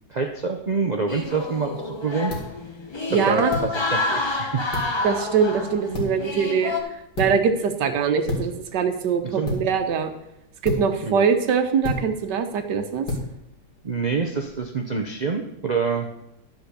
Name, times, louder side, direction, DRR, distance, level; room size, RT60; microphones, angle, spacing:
voice 1, 0.1-2.3 3.1-4.6 9.2-9.5 11.1-11.2 13.8-16.1, right 4 dB, 65° right, 3 dB, 0.4 m, -26 dB
sound 1, 1.1-14.6, left 2 dB, 85° left, 2.9 m, -35 dB
sound 2, 1.1-6.8, left 3 dB, 20° left, 0.8 m, -28 dB
voice 2, 3.1-3.5 5.0-10.1 10.6-13.1, right 6 dB, 90° right, 8 dB, 1.6 m, -23 dB
10.5 x 5.2 x 6.7 m, 0.85 s
omnidirectional pair, 1.8 m